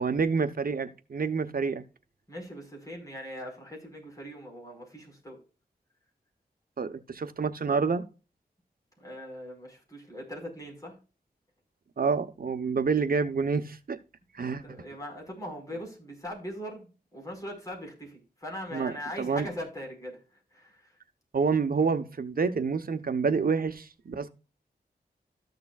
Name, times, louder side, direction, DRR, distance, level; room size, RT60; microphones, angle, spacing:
voice 1, 0.0-1.8 6.8-8.0 12.0-14.0 14.3-14.6 18.7-19.5 21.3-24.3, right 5 dB, 60° right, 0.9 m, -28 dB
voice 2, 2.3-5.4 9.0-11.0 14.5-20.2 20.5-20.9, equal, 20° left, 4.7 m, -41 dB
14.0 x 6.7 x 2.3 m
wide cardioid pair, 115°, 17 cm